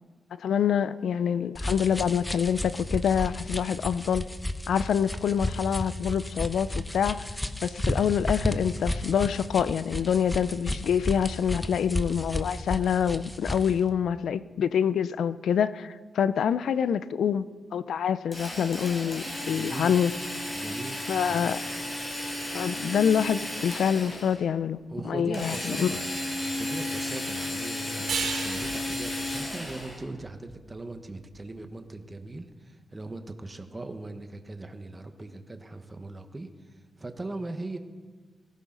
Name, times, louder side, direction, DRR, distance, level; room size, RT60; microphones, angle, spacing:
voice 1, 0.4-4.3 4.7-7.3 7.6-17.5 17.7-20.1 21.1-21.6 22.5-24.8 25.0-26.0, left 8 dB, 85° left, 0.5 m, -26 dB
sound 1, 1.6-13.8, left 1 dB, 10° left, 0.9 m, -33 dB
Drill, 18.3-24.4 25.3-30.0, left 1 dB, 30° left, 5.3 m, -34 dB
voice 2, 19.5-19.9 20.5-21.5 24.9-36.5 37.0-37.8, right 2 dB, 25° right, 1.2 m, -39 dB
sound 2, 28.1-31.3, right 5 dB, 80° right, 2.9 m, -35 dB
19.0 x 16.0 x 3.9 m
wide cardioid pair, 110°, 0 cm